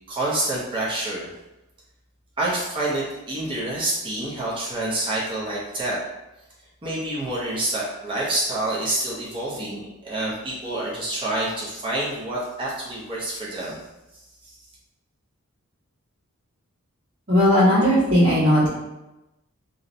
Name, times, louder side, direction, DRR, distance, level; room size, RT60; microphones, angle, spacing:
voice 1, 0.1-1.3 2.4-6.0 6.8-13.8 14.1-14.6, right 1 dB, 20° right, -6 dB, 0.5 m, -27 dB
voice 2, 17.3-18.7, equal, 45° right, -16 dB, 1.2 m, -17 dB
2.5 x 2.0 x 2.6 m, 0.98 s
head